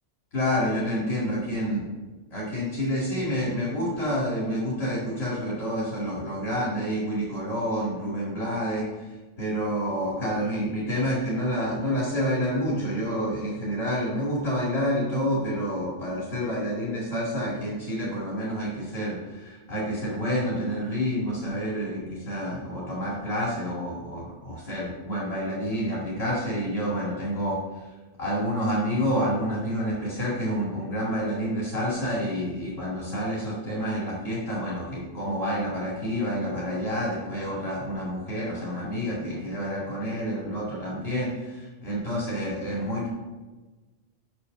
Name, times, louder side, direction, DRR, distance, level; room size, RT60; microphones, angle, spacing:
voice 1, 0.3-1.8 2.3-27.6 28.2-43.1, equal, 50° left, -7 dB, 2.5 m, -28 dB
6.8 x 6.4 x 6.5 m, 1.2 s
omnidirectional pair, 1.3 m